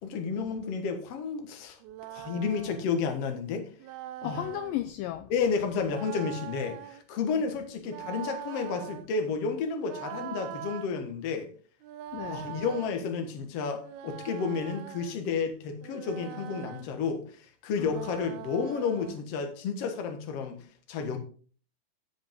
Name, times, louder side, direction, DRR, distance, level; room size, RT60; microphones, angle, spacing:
voice 1, 0.0-1.8 2.1-3.7 4.2-4.4 5.3-11.5 12.3-20.6 20.9-21.2, left 5 dB, 55° left, 1.9 m, -31 dB
sound 1, 1.8-2.9 3.8-4.8 5.8-7.0 7.8-9.1 9.8-10.9 11.8-12.9 13.8-15.2 15.8-16.9 17.8-19.2, right 13 dB, 85° right, 2.5 m, -42 dB
voice 2, 4.2-5.3 12.1-12.5 17.8-18.0, left 13 dB, 80° left, 2.1 m, -35 dB
15.5 x 5.2 x 3.7 m
omnidirectional pair, 4.5 m